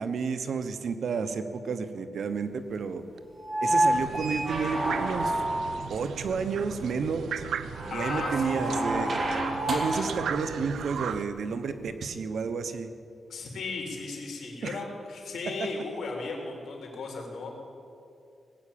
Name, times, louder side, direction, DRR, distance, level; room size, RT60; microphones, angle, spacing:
voice 1, 0.0-3.0 3.6-5.4 5.9-7.3 7.9-9.2 9.7-12.9 14.6-14.8 15.6-15.7, right 5 dB, 70° right, 9 dB, 1.0 m, -31 dB
sound 1, 3.4-5.9 7.7-10.2 11.9-12.0, right 1 dB, 50° right, 3.1 m, -28 dB
Lagoon ambience water dripping and frogs close, 3.9-11.2, right 7 dB, 90° right, 0.6 m, -37 dB
voice 2, 7.9-8.8 13.3-17.6, left 3 dB, 70° left, 0 dB, 3.6 m, -36 dB
19.0 x 8.6 x 8.6 m, 2.5 s
cardioid pair, 100°, 0 cm